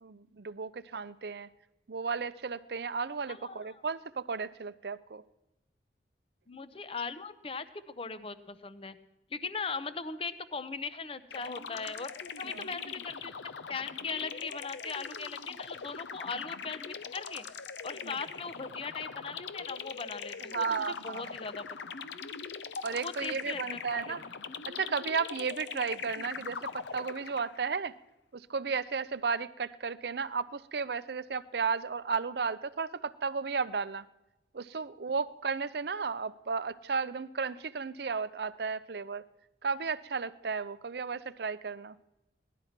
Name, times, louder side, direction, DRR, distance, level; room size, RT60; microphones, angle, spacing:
voice 1, 0.0-1.5 1.9-5.2 12.4-12.7 18.0-18.2 20.5-21.4 22.8-24.2 24.7-27.9 28.3-34.0 34.5-39.2 39.6-42.0, right 5 dB, 60° right, 15 dB, 0.5 m, -34 dB
voice 2, 3.3-3.8 6.5-9.0 9.3-12.1 12.4-13.3 13.7-17.5 17.8-21.6 23.0-24.2, left 4 dB, 30° left, 12 dB, 0.7 m, -39 dB
sound 1, 11.3-27.7, left 6 dB, 80° left, 0.6 m, -41 dB
17.0 x 12.0 x 5.8 m, 0.96 s
head